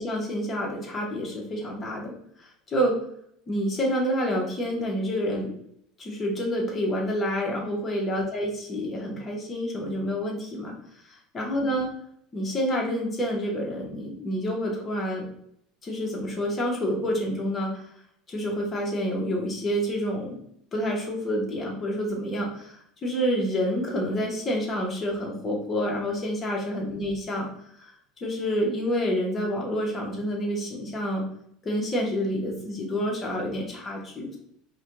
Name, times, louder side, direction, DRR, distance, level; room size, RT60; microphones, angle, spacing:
voice 1, 0.0-2.1 2.7-3.0 3.5-5.6 6.0-10.7 11.1-11.9 12.3-15.2 15.8-17.8 18.3-20.4 20.7-27.5 27.8-27.9 28.2-31.2 31.6-34.4, equal, 25° left, -1 dB, 0.8 m, -28 dB
2.4 x 2.1 x 2.9 m, 0.71 s
supercardioid pair, 135°, 0 cm